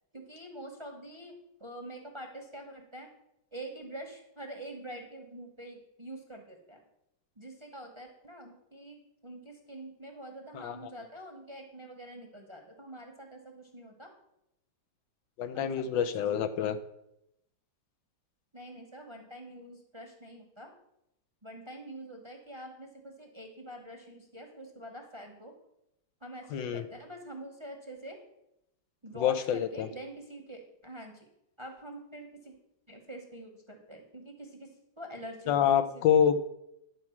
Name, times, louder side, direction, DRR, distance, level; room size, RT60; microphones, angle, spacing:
voice 1, 0.1-3.1 3.5-6.8 7.4-14.1 15.5-15.8 16.2-16.7 18.5-20.7 21.4-25.5 26.2-28.2 29.0-31.3 31.6-32.6 32.9-36.0, right 1 dB, 20° right, 3 dB, 0.9 m, -46 dB
voice 2, 15.4-16.8 26.5-26.8 29.2-29.9 35.5-36.4, left 8 dB, 80° left, 10 dB, 1.4 m, -27 dB
10.5 x 4.6 x 7.2 m, 0.83 s
omnidirectional pair, 2.1 m